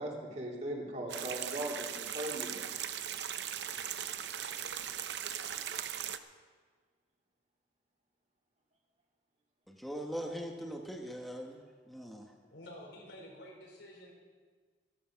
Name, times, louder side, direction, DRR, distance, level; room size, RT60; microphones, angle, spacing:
voice 1, 0.0-2.6, right 1 dB, 40° right, -1 dB, 2.7 m, -39 dB
sound 1, 1.1-6.2, right 9 dB, 70° right, 0.7 m, -39 dB
voice 2, 9.7-11.6 11.9-12.3, equal, ahead, 0 dB, 1.3 m, -41 dB
voice 3, 12.5-14.1, left 1 dB, 85° left, -1 dB, 5.1 m, -50 dB
15.5 x 13.5 x 5.8 m, 1.5 s
head